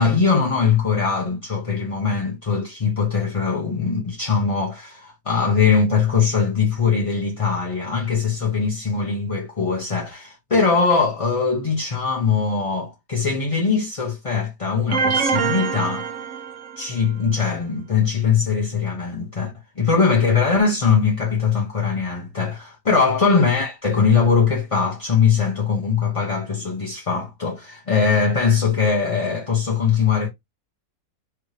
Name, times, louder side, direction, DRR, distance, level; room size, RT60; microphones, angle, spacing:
voice 1, 0.0-16.1 16.8-30.3, left 5 dB, 35° left, 0.6 m, -21 dB
sound 1, 14.9-17.0, right 6 dB, 65° right, 0.9 m, -24 dB
4.5 x 2.6 x 3.2 m
omnidirectional pair, 1.5 m